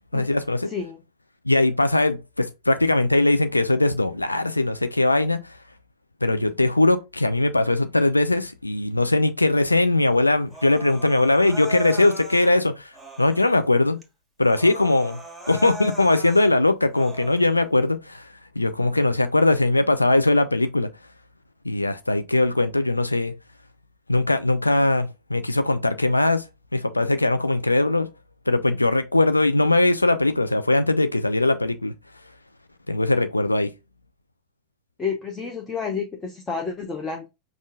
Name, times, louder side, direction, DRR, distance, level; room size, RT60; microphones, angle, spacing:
voice 1, 0.1-0.7 1.5-5.4 6.2-12.9 13.2-14.0 14.4-15.2 15.5-18.3 18.6-20.9 21.7-23.3 24.1-26.4 26.7-28.1 28.5-31.9 32.9-33.7, left 2 dB, 85° left, 0.4 m, -20 dB
Human voice, 10.5-12.5 12.9-13.6 14.0-14.1 14.4-16.5 16.9-17.5, right 2 dB, 5° right, 1.4 m, -39 dB
voice 2, 35.0-37.3, left 5 dB, 20° left, 0.8 m, -30 dB
5.3 x 2.4 x 3.6 m
figure-of-eight pair, 90°, 0 cm